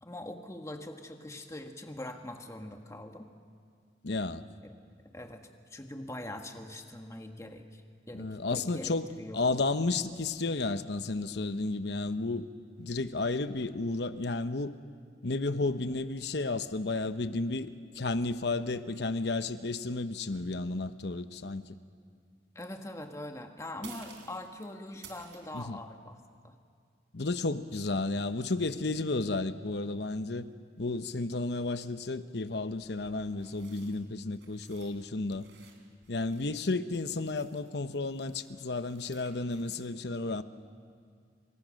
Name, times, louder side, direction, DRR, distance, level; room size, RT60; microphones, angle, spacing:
voice 1, 0.0-3.3 5.1-7.8 8.1-9.4 22.5-26.5 27.9-28.0, left 1 dB, 15° left, 4 dB, 1.5 m, -43 dB
voice 2, 4.0-4.4 8.1-12.5 12.8-14.7 15.2-21.8 25.5-25.8 27.1-30.5 30.8-35.5 36.1-40.4, left 3 dB, 65° left, 11 dB, 0.9 m, -32 dB
sound 1, 23.0-23.2 23.8-25.6 31.6-31.7 32.7-35.0 35.2-39.9, right 5 dB, 75° right, 4.0 m, -55 dB
29.0 x 26.0 x 6.4 m, 2.1 s
head